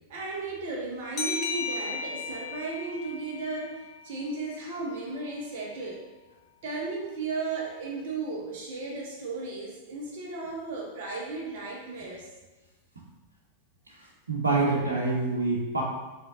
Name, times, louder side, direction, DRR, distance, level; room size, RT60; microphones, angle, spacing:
voice 1, 0.1-6.1 6.6-12.3, right 3 dB, 55° right, -2 dB, 1.1 m, -35 dB
sound 1, 1.2-4.5, left 5 dB, 30° left, 0.9 m, -36 dB
voice 2, 13.9-15.8, right 3 dB, 75° right, -4 dB, 1.2 m, -27 dB
5.6 x 3.7 x 5.0 m, 1.2 s
figure-of-eight pair, 90°, 0 cm